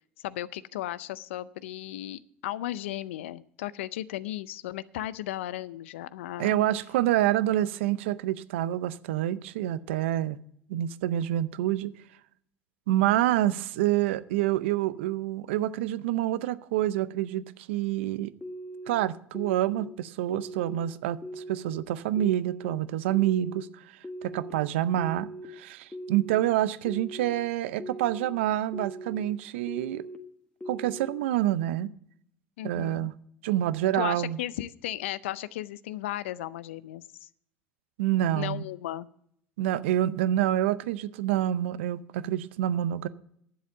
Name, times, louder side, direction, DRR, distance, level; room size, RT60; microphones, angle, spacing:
voice 1, 0.2-6.6 32.6-33.1 33.9-37.3 38.4-39.1, left 14 dB, 85° left, 0.5 m, -35 dB
voice 2, 6.4-10.4 10.7-11.9 12.9-18.3 18.9-23.7 24.2-30.0 30.7-31.9 32.6-33.1 33.4-34.4 38.0-38.6 39.6-43.1, right 13 dB, 80° right, 0.6 m, -27 dB
sound 1, 18.4-18.9 19.3-19.8 20.3-20.8 21.2-21.7 22.2-22.7 23.1-23.6 24.0-24.5 25.0-25.5 25.9-26.4 26.8-27.3 27.8-28.3 28.7-29.2 29.7-30.2 30.6-31.1, right 1 dB, 15° left, 1.4 m, -40 dB
11.0 x 7.6 x 6.9 m
hypercardioid pair, 75°, 6 cm